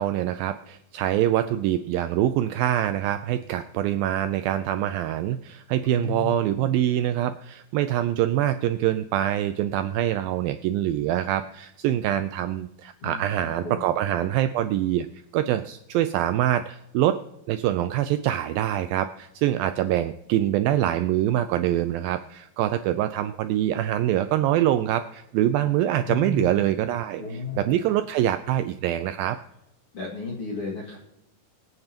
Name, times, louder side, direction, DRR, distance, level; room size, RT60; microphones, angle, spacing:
voice 1, 0.0-15.1 15.3-17.2 17.5-27.2 27.6-29.4, right 12 dB, 85° right, 10 dB, 2.1 m, -24 dB
voice 2, 5.8-6.7 13.0-13.8 26.1-26.7 27.2-27.8 29.9-31.0, left 3 dB, 40° left, -4 dB, 2.5 m, -34 dB
24.0 x 8.9 x 2.9 m, 0.84 s
omnidirectional pair, 4.6 m